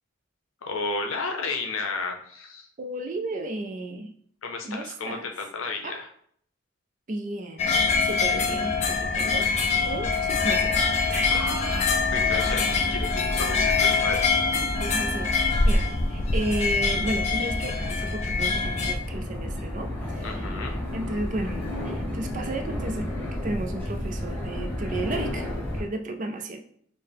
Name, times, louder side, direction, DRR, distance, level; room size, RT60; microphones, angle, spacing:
voice 1, 0.6-2.7 4.4-6.1 11.3-14.3 20.2-20.8, left 3 dB, 85° left, 3 dB, 0.7 m, -33 dB
voice 2, 2.8-4.1 4.6-5.3 5.8-6.0 7.1-7.7 8.0-9.5 9.8-11.3 14.6-25.5 25.7-26.6, right 2 dB, 40° right, 6 dB, 0.4 m, -33 dB
sound 1, 7.6-18.9, left 4 dB, 35° left, 0.4 m, -24 dB
sound 2, 8.6-25.8, left 1 dB, 10° left, 0.8 m, -33 dB
4.5 x 2.0 x 3.4 m, 0.64 s
head